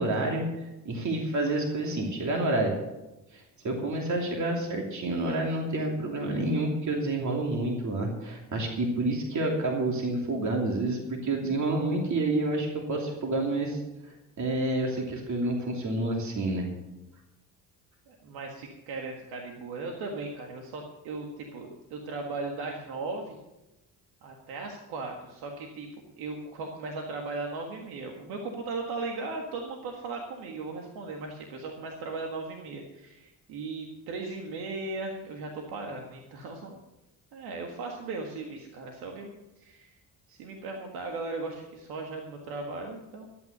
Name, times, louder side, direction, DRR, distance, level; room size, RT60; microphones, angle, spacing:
voice 1, 0.0-2.7 3.3-16.7, right 2 dB, 50° right, 0 dB, 2.9 m, -29 dB
voice 2, 18.1-23.4 24.2-25.9 26.2-36.8 37.3-39.9 40.3-43.3, right 3 dB, 90° right, 1 dB, 1.7 m, -37 dB
12.5 x 9.5 x 6.7 m, 0.97 s
supercardioid pair, 75°, 36 cm